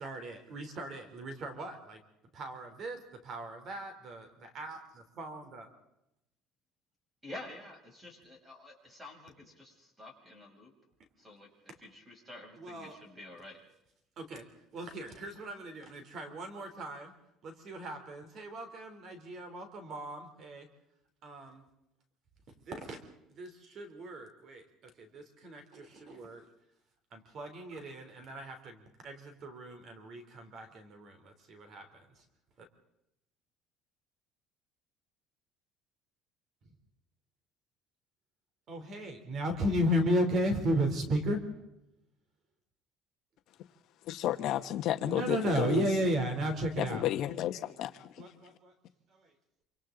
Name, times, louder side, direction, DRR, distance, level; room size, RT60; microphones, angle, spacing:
voice 1, 0.0-2.0 2.3-5.7 12.6-12.9 14.2-14.5 14.7-17.1 17.4-20.7 21.2-21.6 22.7-23.0 23.4-24.6 25.0-26.5 27.1-32.0 38.7-41.5 45.0-47.0 48.2-48.7, equal, 40° right, 3.4 m, -35 dB
voice 2, 7.2-10.7 11.2-13.6, left 2 dB, 10° right, 6.9 m, -49 dB
voice 3, 44.1-45.8 46.8-48.2, left 12 dB, 55° left, 1.0 m, -32 dB
27.5 x 26.5 x 3.9 m
cardioid pair, 155°, 0 cm